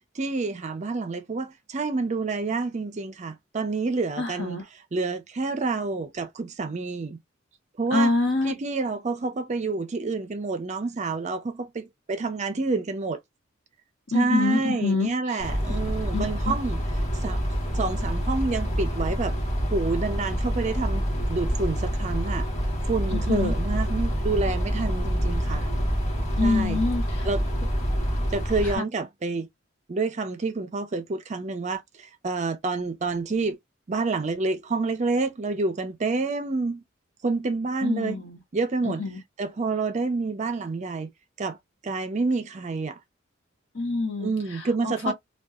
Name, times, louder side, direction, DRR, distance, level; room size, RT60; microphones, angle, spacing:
voice 1, 0.1-4.6 4.9-7.2 7.8-8.1 8.4-13.2 14.1-16.8 17.2-17.4 17.7-19.4 19.7-22.5 22.9-25.7 26.4-26.8 27.2-27.4 28.3-29.5 29.9-33.6 33.9-36.8 37.2-38.2 38.5-39.0 39.4-41.1 41.4-41.6 41.8-43.0 44.2-45.1, right 3 dB, 35° right, 0.4 m, -28 dB
voice 2, 4.2-4.6 7.9-8.5 14.1-15.1 16.1-16.3 23.1-23.5 26.4-27.2 37.8-38.4 38.8-39.2 43.7-44.3 44.8-45.1, left 3 dB, 65° left, 1.1 m, -25 dB
sound 1, 15.4-28.8, equal, 35° left, 1.0 m, -27 dB
2.6 x 2.3 x 2.3 m
head